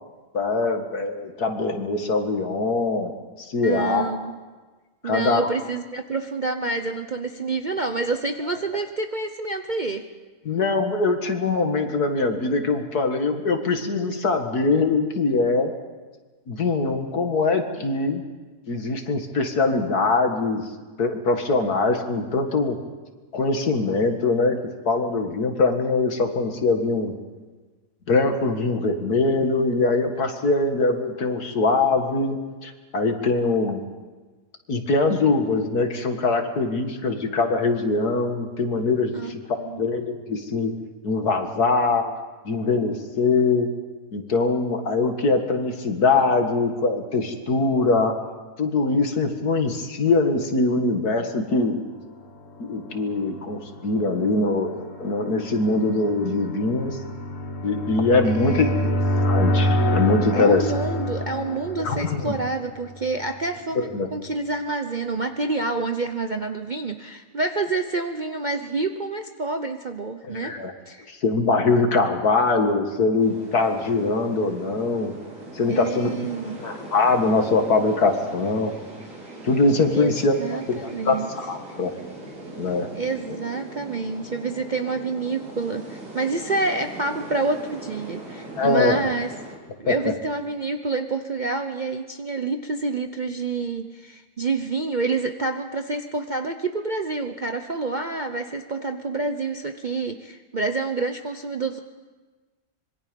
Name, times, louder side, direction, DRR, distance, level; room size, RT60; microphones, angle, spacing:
voice 1, 0.3-3.1 3.4-4.2 5.0-5.5 10.5-15.7 16.5-18.2 18.7-20.7 21.0-22.8 23.3-24.6 24.9-27.1 28.1-32.4 32.6-33.8 34.7-40.7 41.0-42.1 42.4-43.7 44.1-48.1 48.6-51.8 52.6-57.0 57.6-60.7 61.8-62.3 63.8-64.1 70.2-70.7 71.1-75.1 75.5-76.3 76.6-78.7 79.4-81.9 82.6-82.9 88.6-89.0 89.9-90.0, left 3 dB, 65° left, 5 dB, 2.3 m, -22 dB
voice 2, 3.6-4.4 5.0-10.1 39.1-39.3 39.6-39.9 58.2-58.9 60.3-70.6 70.9-71.1 75.7-76.6 79.9-81.3 82.9-89.3 89.8-101.8, right 3 dB, 40° right, 6 dB, 0.7 m, -28 dB
sound 1, 52.6-63.4, equal, 50° left, 2.0 m, -27 dB
sound 2, 73.2-89.6, right 1 dB, 75° right, 4.7 m, -40 dB
25.5 x 22.5 x 5.3 m, 1.3 s
omnidirectional pair, 1.8 m